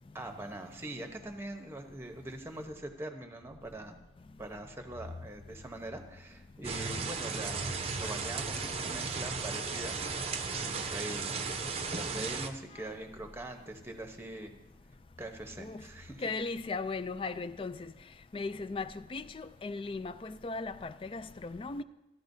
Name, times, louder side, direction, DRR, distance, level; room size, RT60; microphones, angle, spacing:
voice 1, 0.1-4.0 4.4-7.6 8.0-10.0 10.6-11.6 11.9-14.5 15.2-16.2, right 1 dB, 15° right, 0.9 m, -43 dB
sound 1, 6.6-12.5, right 4 dB, 35° right, 0.6 m, -35 dB
voice 2, 16.2-17.9 18.3-21.8, left 3 dB, 30° left, 0.3 m, -37 dB
15.0 x 11.0 x 2.7 m
head